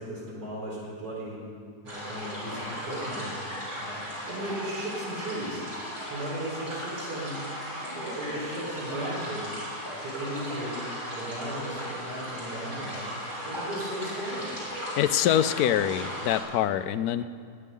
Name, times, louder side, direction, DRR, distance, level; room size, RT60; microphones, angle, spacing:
voice 1, 0.0-1.4 1.8-3.3 3.8-5.6 6.1-9.5 10.0-10.8 11.1-13.0 13.4-14.5, right 1 dB, 80° right, -6 dB, 5.3 m, -36 dB
sound 1, 1.9-16.4, equal, 55° right, 5.5 m, -37 dB
voice 2, 15.0-17.2, left 11 dB, 70° left, 13 dB, 1.0 m, -25 dB
20.5 x 9.8 x 5.5 m, 2.2 s
omnidirectional pair, 1.8 m